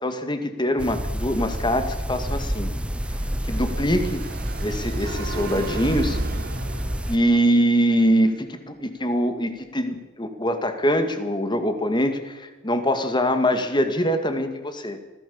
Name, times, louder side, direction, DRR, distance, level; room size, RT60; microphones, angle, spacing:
voice 1, 0.0-2.7 3.5-4.2 4.6-6.2 7.1-15.0, equal, 20° left, 8 dB, 2.1 m, -23 dB
sound 1, 0.8-7.2, equal, 5° right, 0.7 m, -29 dB
Car passing by, 2.6-7.8, right 2 dB, 45° right, 1.3 m, -36 dB
Gong, 5.0-7.9, right 4 dB, 80° right, 3.6 m, -41 dB
24.5 x 16.5 x 7.1 m, 1.2 s
head